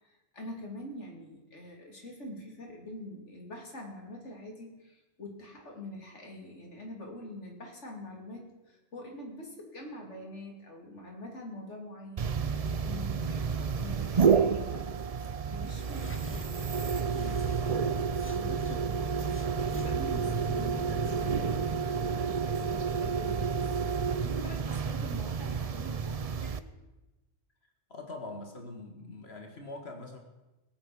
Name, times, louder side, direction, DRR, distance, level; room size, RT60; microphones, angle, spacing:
voice 1, 0.0-14.9 15.4-26.7, left 1 dB, 90° left, 0 dB, 3.1 m, -45 dB
sound 1, 12.2-26.6, right 6 dB, 40° right, 0.6 m, -30 dB
sound 2, 16.0-18.8 19.3-21.4, left 2 dB, 15° left, 0.8 m, -44 dB
voice 2, 27.9-30.2, left 2 dB, 60° left, 3 dB, 2.1 m, -43 dB
18.5 x 8.9 x 6.2 m, 1.0 s
omnidirectional pair, 1.2 m